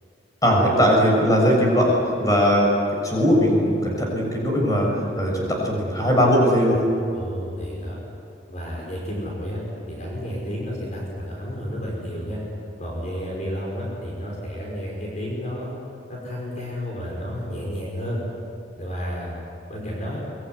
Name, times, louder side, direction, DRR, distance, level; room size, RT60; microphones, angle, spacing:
voice 1, 0.4-2.7 3.0-4.9 5.2-6.8, equal, 20° left, -1 dB, 6.7 m, -19 dB
voice 2, 7.1-8.0 8.5-9.6 9.9-12.4 12.8-15.7 16.1-18.2 18.8-19.4 19.7-20.2, equal, 40° left, -3 dB, 5.4 m, -31 dB
24.0 x 23.0 x 9.7 m, 2.6 s
head